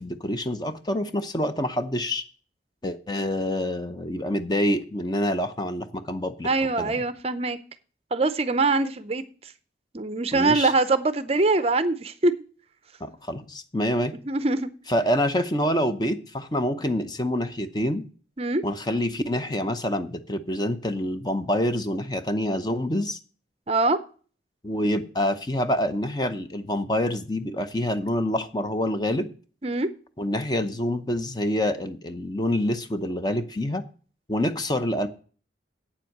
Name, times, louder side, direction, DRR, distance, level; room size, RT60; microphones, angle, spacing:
voice 1, 0.0-2.2 2.8-6.5 6.8-7.0 10.3-10.7 13.0-14.2 14.9-18.0 18.6-23.2 24.6-29.3 30.2-33.8 34.3-35.1, left 1 dB, 20° left, 0.7 m, -26 dB
voice 2, 6.4-7.6 8.1-9.2 9.9-12.3 14.3-14.7 18.4-18.6 23.7-24.0 29.6-29.9, right 3 dB, 30° right, 0.5 m, -23 dB
8.6 x 7.4 x 6.5 m
head